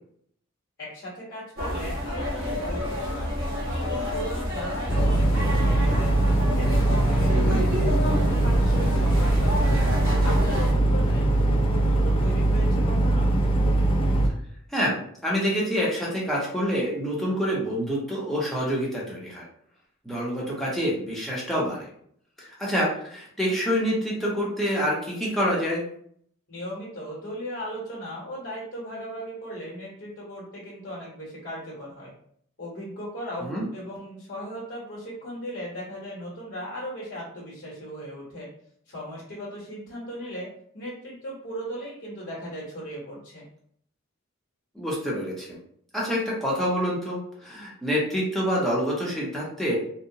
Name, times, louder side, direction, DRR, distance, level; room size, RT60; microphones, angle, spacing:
voice 1, 0.8-3.5 3.8-6.1 6.5-9.8 10.2-13.3 26.5-32.1 32.6-38.5 38.9-43.4, equal, 50° left, -6 dB, 0.9 m, -37 dB
sound 1, 1.6-10.7, left 1 dB, 45° right, 1.1 m, -30 dB
sound 2, 4.9-14.3, right 1 dB, 25° left, 0.3 m, -21 dB
voice 2, 7.3-7.6 14.7-19.4 20.0-21.9 22.4-25.8 33.4-33.7 44.7-45.6 45.9-49.8, equal, ahead, -6 dB, 0.7 m, -27 dB
2.8 x 2.0 x 2.7 m, 0.64 s
head